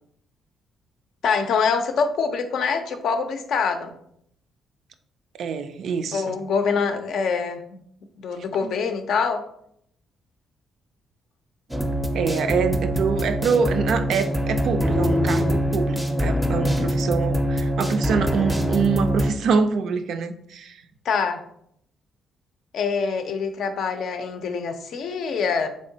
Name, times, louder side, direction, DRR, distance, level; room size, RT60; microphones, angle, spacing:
voice 1, 1.2-3.9 6.1-7.8 8.2-9.4 21.1-21.4 22.7-25.7, left 5 dB, 70° left, 7 dB, 0.5 m, -25 dB
voice 2, 5.4-6.4 8.6-8.7 12.1-20.8, right 5 dB, 70° right, 9 dB, 0.3 m, -25 dB
sound 1, 11.7-19.3, equal, 5° right, 0.5 m, -24 dB
3.6 x 3.2 x 2.7 m, 0.70 s
cardioid pair, 90°, 0 cm